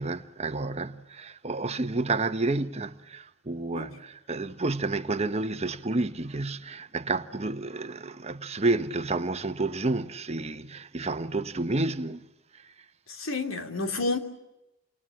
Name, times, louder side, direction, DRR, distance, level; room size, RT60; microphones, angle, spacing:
voice 1, 0.0-12.2 12.5-12.7, right 2 dB, 30° right, 1.2 m, -30 dB
voice 2, 13.1-14.2, left 3 dB, 85° left, 3.2 m, -30 dB
29.5 x 27.5 x 7.4 m
head